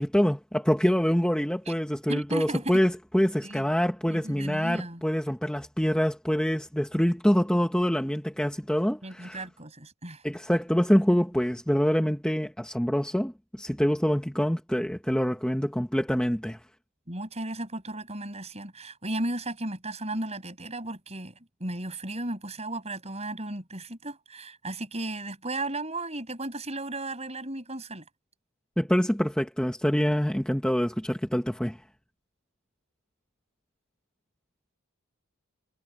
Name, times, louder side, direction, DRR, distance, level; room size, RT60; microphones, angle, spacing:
voice 1, 0.0-9.4 10.2-16.6 28.8-31.8, equal, 5° left, 1.4 m, -25 dB
voice 2, 2.1-2.8 3.4-3.7 4.1-5.0 9.0-10.2 17.1-21.3 21.6-28.0, right 2 dB, 30° right, 6.8 m, -35 dB
head